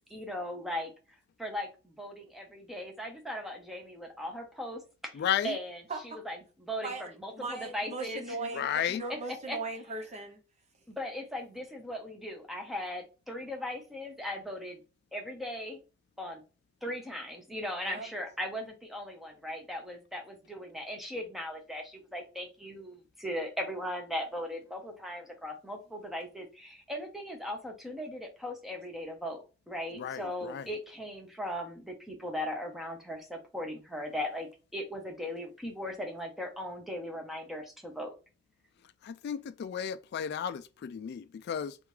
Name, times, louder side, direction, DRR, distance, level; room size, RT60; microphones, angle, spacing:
voice 1, 0.1-0.9 1.4-5.1 5.4-8.4 9.5-9.6 10.9-14.8 15.1-15.8 16.2-16.4 16.8-38.1, left 1 dB, ahead, 1.0 m, -38 dB
voice 2, 5.1-5.6 8.5-9.0 30.0-30.7 39.0-41.8, left 8 dB, 55° left, 0.3 m, -33 dB
voice 3, 5.9-6.2 6.8-10.4 17.8-18.1, right 3 dB, 35° right, 0.8 m, -39 dB
3.6 x 3.4 x 3.2 m
head